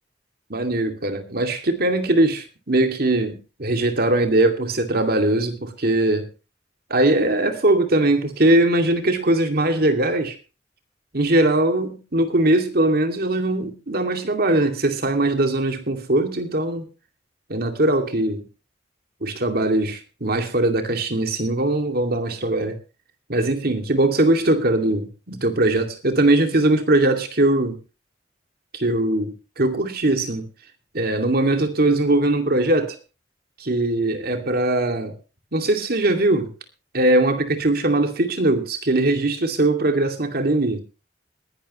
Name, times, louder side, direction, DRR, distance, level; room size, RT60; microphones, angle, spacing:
voice 1, 0.5-6.3 6.9-10.4 11.1-16.9 17.5-18.4 19.2-22.8 23.3-27.8 28.7-30.5 30.9-33.0 33.6-35.1 35.5-36.5 36.9-40.8, right 1 dB, 55° right, 2.4 m, -20 dB
21.0 x 11.5 x 3.1 m
head